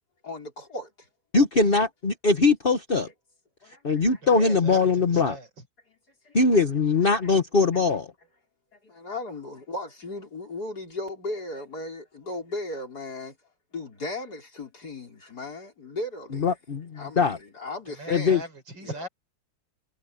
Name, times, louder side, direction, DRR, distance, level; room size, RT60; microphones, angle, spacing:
voice 1, 0.2-1.1 1.6-1.7 3.6-4.2 6.2-6.6 7.2-7.3 8.7-13.4 13.7-16.5 17.0-18.4 18.8-19.0, left 2 dB, 55° left, 5.5 m, -37 dB
voice 2, 1.3-3.1 3.8-5.3 6.3-8.1 16.3-17.4 18.1-18.4, left 4 dB, 30° left, 1.5 m, -21 dB
voice 3, 4.2-5.7 17.9-19.1, right 1 dB, 75° right, 6.7 m, -39 dB
omnidirectional pair, 2.1 m